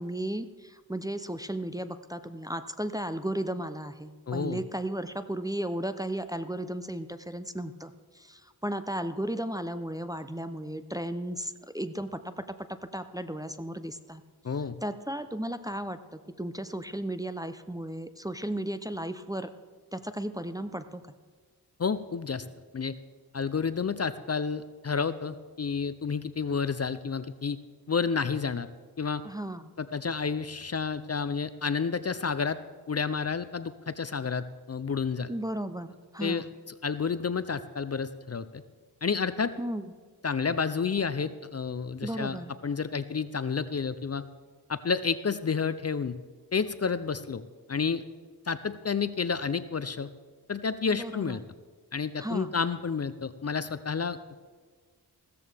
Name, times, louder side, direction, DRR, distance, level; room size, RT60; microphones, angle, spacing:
voice 1, 0.0-14.2 14.8-19.5 19.9-21.0 29.2-29.7 35.3-36.5 39.6-39.9 42.0-42.5 50.9-51.4 52.2-52.5, right 1 dB, 10° right, 10 dB, 0.6 m, -35 dB
voice 2, 4.3-4.6 14.4-14.8 21.8-22.5 22.7-23.0 23.3-27.6 27.9-28.7 29.0-29.2 29.8-32.6 32.9-35.3 36.2-36.4 36.8-38.6 39.0-39.5 40.2-42.4 42.6-44.2 44.7-46.2 46.5-47.4 47.7-48.0 48.5-50.1 50.5-51.4 51.9-54.2, left 5 dB, 40° left, 14 dB, 0.5 m, -30 dB
15.5 x 14.0 x 3.4 m, 1.5 s
wide cardioid pair, 60°, 40 cm